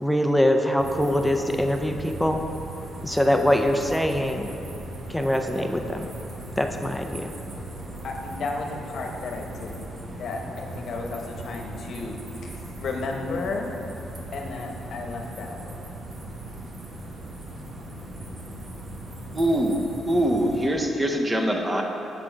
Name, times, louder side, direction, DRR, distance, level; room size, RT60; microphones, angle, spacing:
voice 1, 0.0-2.4 3.0-4.6 5.1-6.1 6.6-7.3, left 1 dB, 5° left, 4 dB, 0.5 m, -23 dB
sound 1, 0.8-20.7, right 1 dB, 40° right, 1.1 m, -38 dB
voice 2, 8.0-9.8 10.2-13.7 14.3-15.7, left 3 dB, 60° left, 2 dB, 1.0 m, -33 dB
voice 3, 19.3-19.8 20.1-21.8, right 1 dB, 15° right, 2 dB, 0.9 m, -23 dB
7.4 x 6.1 x 4.5 m, 3.0 s
cardioid pair, 90°, 0 cm